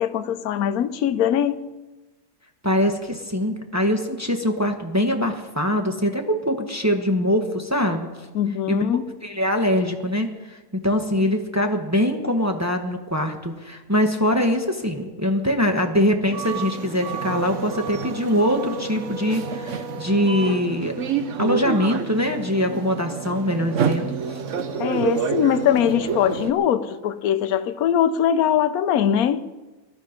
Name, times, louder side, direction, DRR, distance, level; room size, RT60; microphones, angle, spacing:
voice 1, 0.0-1.7 8.3-9.0 24.8-29.4, left 9 dB, 60° left, 1.0 m, -21 dB
voice 2, 2.6-8.1 8.7-8.8 9.2-10.6 10.8-20.9 21.4-24.1, equal, 10° right, 0.8 m, -23 dB
sound 1, 16.3-26.5, right 6 dB, 55° right, 0.9 m, -28 dB
19.5 x 12.5 x 5.2 m
omnidirectional pair, 2.1 m